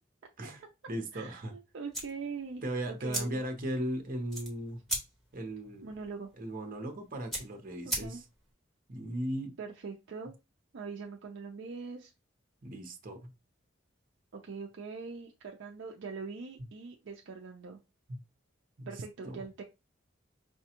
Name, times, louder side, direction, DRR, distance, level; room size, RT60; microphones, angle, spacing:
voice 1, 0.4-1.5 2.6-4.8 5.3-5.9 6.4-8.2 8.9-9.6 12.6-13.3 18.1-18.2 18.8-18.9 19.2-19.5, right 1 dB, 45° right, 5 dB, 0.8 m, -37 dB
voice 2, 1.1-3.4 5.8-6.3 8.0-8.2 9.6-10.3 10.7-12.1 14.3-17.8 18.9-19.6, right 4 dB, 60° right, 1 dB, 0.4 m, -42 dB
sound 1, 1.9-8.5, right 1 dB, ahead, 1.2 m, -40 dB
4.8 x 2.2 x 2.9 m, 0.27 s
head